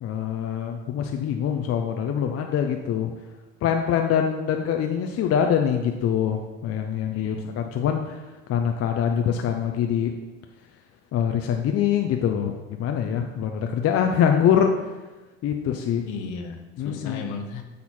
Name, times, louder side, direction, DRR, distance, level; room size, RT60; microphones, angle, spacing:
voice 1, 0.0-3.1 3.6-8.2 8.5-10.1 11.1-12.5 12.8-14.7 15.4-16.0 16.8-17.2, left 8 dB, 45° left, 4 dB, 0.7 m, -24 dB
voice 2, 7.1-7.5 16.1-17.6, left 4 dB, 65° left, 6 dB, 1.1 m, -35 dB
8.4 x 4.2 x 4.3 m, 1.2 s
supercardioid pair, 85°, 34 cm